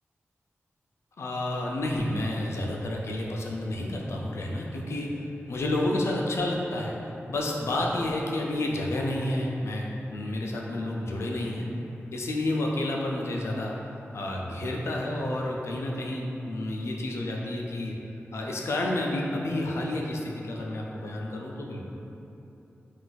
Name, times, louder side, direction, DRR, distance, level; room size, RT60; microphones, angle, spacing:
voice 1, 1.2-11.7 12.1-13.9 14.1-17.9 18.3-21.8, left 1 dB, 75° left, -1 dB, 0.4 m, -30 dB
2.4 x 2.3 x 3.9 m, 3.0 s
wide cardioid pair, 75°, 5 cm